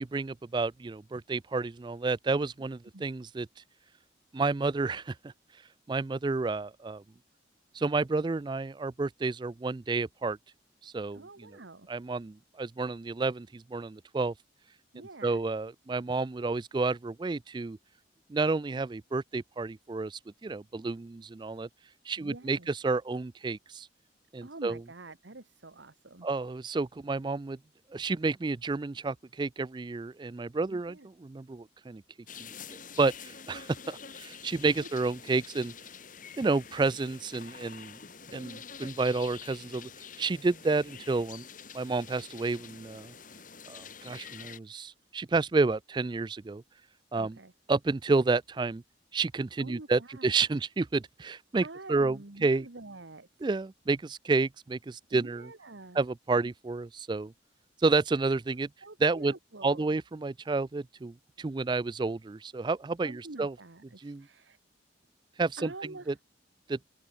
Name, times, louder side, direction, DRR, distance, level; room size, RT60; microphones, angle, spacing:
voice 1, 0.0-3.5 4.3-5.3 5.9-7.0 7.7-10.4 10.8-11.3 11.9-14.3 15.2-17.8 18.3-21.7 22.1-23.9 24.3-24.8 26.2-27.6 27.9-32.0 33.0-35.7 36.4-38.0 38.3-39.9 40.2-41.5 41.7-43.1 43.7-46.6 47.1-47.4 47.7-48.8 49.1-52.7 53.4-55.5 55.9-57.3 57.8-58.7 59.0-59.3 59.6-63.5 64.0-64.3 65.4-65.7 66.1-66.2 66.7-66.8, right 3 dB, 25° right, 0.3 m, -30 dB
voice 2, 11.1-11.9 14.9-15.4 22.2-22.7 24.4-26.3 30.7-31.1 47.1-47.5 49.6-50.3 51.6-53.3 55.1-56.0 58.8-59.9 63.0-64.6 65.6-66.2, right 2 dB, 80° right, 1.7 m, -47 dB
sound 1, 32.3-44.6, left 6 dB, 45° left, 3.8 m, -47 dB
open air
head